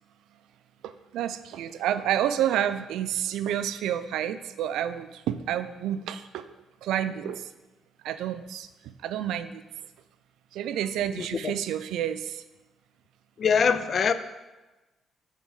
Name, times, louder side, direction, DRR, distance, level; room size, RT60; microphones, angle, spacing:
voice 1, 0.8-6.5 6.8-7.5 8.0-9.6 10.5-12.4, right 10 dB, 85° right, 0.3 m, -29 dB
voice 2, 13.4-14.1, left 6 dB, 50° left, 0.4 m, -22 dB
7.0 x 3.7 x 4.8 m
cardioid pair, 90°, 0 cm